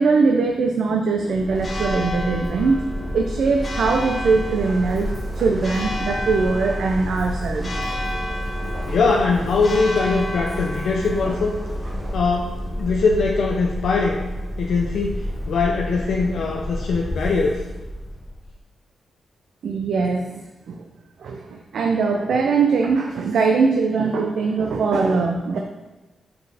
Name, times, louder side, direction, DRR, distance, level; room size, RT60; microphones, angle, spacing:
voice 1, 0.0-5.1 5.4-7.8 19.6-20.4 20.7-20.8 21.2-25.6, right 4 dB, 70° right, 2 dB, 0.4 m, -21 dB
Church bell, 1.3-18.6, equal, 25° left, 0.7 m, -29 dB
sound 1, 3.9-12.2, right 2 dB, 45° right, 0.9 m, -39 dB
voice 2, 8.6-11.6 12.1-14.2 14.6-17.6, left 4 dB, 65° left, 0 dB, 0.5 m, -22 dB
6.5 x 4.3 x 3.4 m, 1.1 s
wide cardioid pair, 175°, 0 cm